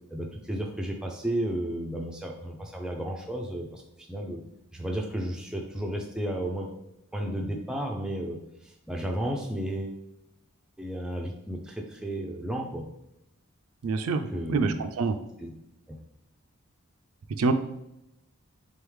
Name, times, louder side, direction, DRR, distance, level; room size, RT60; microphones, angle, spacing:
voice 1, 0.1-4.4 4.7-6.7 7.1-10.0 10.8-12.8 14.3-14.8 15.4-15.5 15.9-16.0, right 1 dB, 5° right, 1 dB, 0.3 m, -33 dB
voice 2, 13.8-15.2 17.4-17.5, right 4 dB, 80° right, 9 dB, 0.4 m, -26 dB
3.8 x 3.5 x 3.1 m, 0.86 s
head